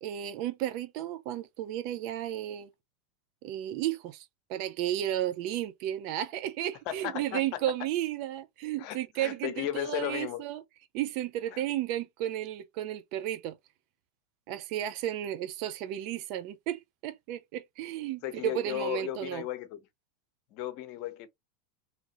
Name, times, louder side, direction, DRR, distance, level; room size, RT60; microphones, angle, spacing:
voice 1, 0.0-2.7 3.4-10.6 10.9-13.6 14.5-19.4, right 12 dB, 55° right, 0.5 m, -33 dB
voice 2, 6.9-7.6 8.8-10.4 11.5-11.6 18.2-19.8 20.5-21.3, left 12 dB, 55° left, 0.7 m, -35 dB
2.9 x 2.4 x 2.9 m
hypercardioid pair, 115°, 0 cm